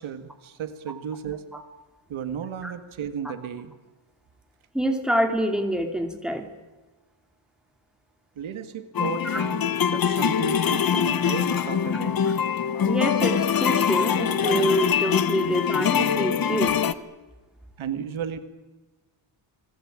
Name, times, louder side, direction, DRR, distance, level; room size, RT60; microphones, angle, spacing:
voice 1, 0.0-1.4 2.1-3.7 8.4-12.2 17.8-18.4, right 8 dB, 80° right, 10 dB, 2.3 m, -34 dB
voice 2, 4.7-6.4 9.2-9.4 12.2-12.3 12.8-16.8, equal, ahead, 5 dB, 3.2 m, -26 dB
sound 1, 8.9-16.9, left 8 dB, 45° left, 1.2 m, -23 dB
29.0 x 20.5 x 9.0 m, 1.2 s
wide cardioid pair, 175°, 47 cm